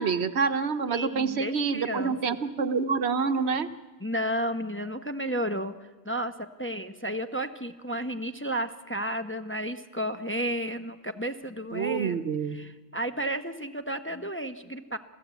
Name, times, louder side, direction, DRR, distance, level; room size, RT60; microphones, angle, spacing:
voice 1, 0.0-3.7 11.7-12.6, right 5 dB, 70° right, 11 dB, 1.2 m, -27 dB
voice 2, 0.9-2.4 4.0-12.2 12.5-15.0, right 1 dB, 10° left, 7 dB, 0.8 m, -32 dB
27.5 x 16.0 x 8.2 m, 1.3 s
omnidirectional pair, 1.1 m